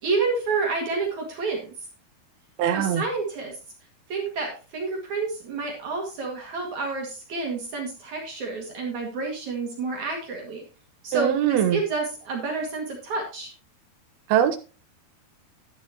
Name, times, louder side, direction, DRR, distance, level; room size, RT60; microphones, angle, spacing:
voice 1, 0.0-1.7 2.7-3.6 4.1-10.6 11.0-13.5, right 4 dB, 55° right, 0 dB, 3.1 m, -29 dB
voice 2, 2.6-3.0 11.1-11.8 14.3-14.6, right 10 dB, 80° right, 8 dB, 2.9 m, -22 dB
11.5 x 10.5 x 2.9 m, 0.33 s
omnidirectional pair, 4.5 m